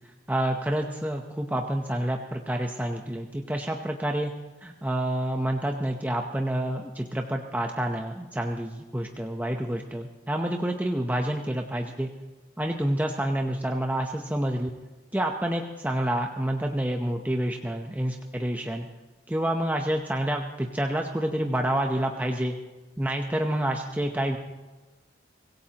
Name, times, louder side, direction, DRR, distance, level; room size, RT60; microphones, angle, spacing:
voice 1, 0.3-4.3 4.6-12.1 12.6-14.7 15.1-18.9 19.3-22.6 23.0-24.4, right 1 dB, 10° right, 2 dB, 0.8 m, -28 dB
24.5 x 17.0 x 2.9 m, 1.2 s
head